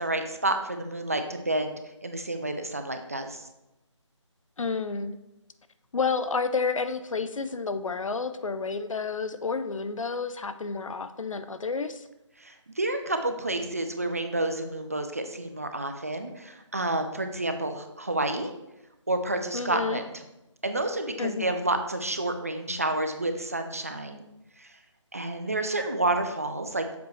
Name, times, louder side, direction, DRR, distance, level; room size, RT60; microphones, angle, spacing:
voice 1, 0.0-3.5 12.4-18.5 19.1-20.1 20.6-24.2 24.6-24.8 25.1-27.0, right 2 dB, 30° right, 7 dB, 0.4 m, -30 dB
voice 2, 4.6-5.2 5.9-12.1 19.5-20.0 21.2-21.5, left 4 dB, 85° left, 11 dB, 0.5 m, -30 dB
7.2 x 3.0 x 4.4 m, 0.91 s
figure-of-eight pair, 165°, 16 cm